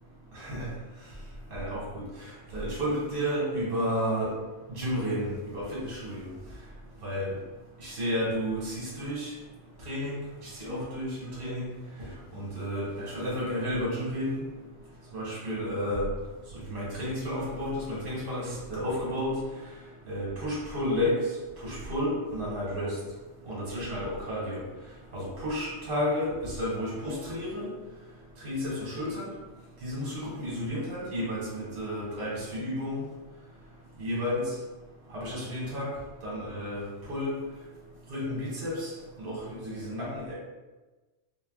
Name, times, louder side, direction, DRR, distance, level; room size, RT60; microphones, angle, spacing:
voice 1, 0.3-0.7 1.5-4.3 4.7-6.3 7.0-7.3 7.8-9.3 9.8-11.7 12.0-14.4 15.1-16.1 16.7-19.4 20.1-21.2 21.6-23.0 23.5-24.6 25.1-27.7 28.4-29.3 29.8-33.0 34.0-34.5 35.1-35.9 36.2-37.4 38.1-40.3, equal, 55° right, -6 dB, 1.1 m, -32 dB
2.2 x 2.1 x 3.4 m, 1.2 s
omnidirectional pair, 1.2 m